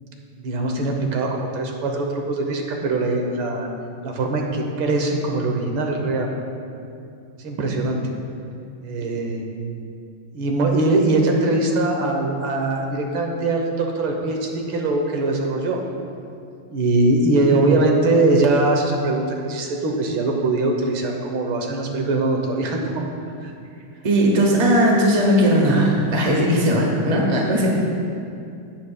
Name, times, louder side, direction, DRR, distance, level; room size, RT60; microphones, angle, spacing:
voice 1, 0.4-3.7 4.0-6.3 7.4-8.1 8.8-9.4 10.3-15.8 16.7-22.9 23.4-23.5, right 2 dB, 75° right, 1 dB, 1.7 m, -21 dB
voice 2, 24.0-27.7, equal, 25° right, -2 dB, 1.0 m, -18 dB
17.0 x 7.6 x 2.2 m, 2.5 s
omnidirectional pair, 2.3 m